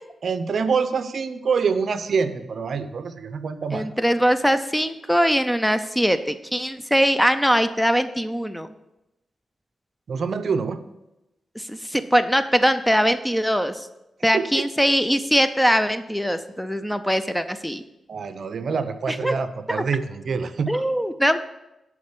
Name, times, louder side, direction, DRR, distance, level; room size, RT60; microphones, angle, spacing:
voice 1, 0.2-3.9 10.1-10.8 14.3-14.6 18.1-20.8, right 5 dB, 60° right, 11 dB, 0.7 m, -26 dB
voice 2, 3.7-8.7 11.6-13.9 14.2-17.8 19.1-19.4 19.7-19.8 20.7-21.4, equal, 5° left, 10 dB, 0.5 m, -21 dB
11.0 x 4.3 x 7.3 m, 0.93 s
wide cardioid pair, 110°, 0 cm